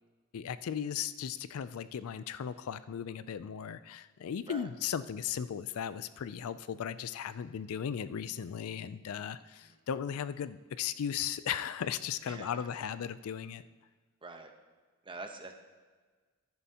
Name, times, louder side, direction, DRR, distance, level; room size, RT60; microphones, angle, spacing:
voice 1, 0.3-13.6, left 8 dB, 70° left, 15 dB, 0.4 m, -37 dB
voice 2, 12.2-12.7 14.2-14.5 15.0-15.5, right 3 dB, 25° right, 5 dB, 0.9 m, -45 dB
11.0 x 10.5 x 2.9 m, 1.4 s
head